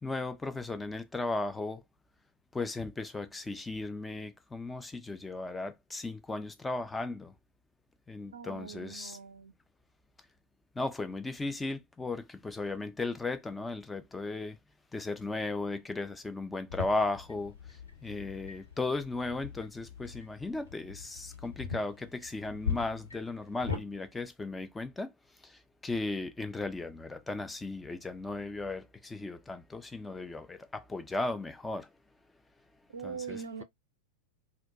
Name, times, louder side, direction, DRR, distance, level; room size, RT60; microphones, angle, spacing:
voice 1, 0.0-1.8 2.5-7.3 8.1-9.2 10.8-14.6 14.9-25.1 25.4-31.9 33.0-33.6, left 2 dB, 10° left, 0.3 m, -36 dB
voice 2, 8.3-9.5 32.9-33.6, right 6 dB, 75° right, 0.3 m, -42 dB
sound 1, 16.7-23.8, left 6 dB, 80° left, 0.9 m, -41 dB
2.2 x 2.1 x 2.5 m
figure-of-eight pair, 90°, 0 cm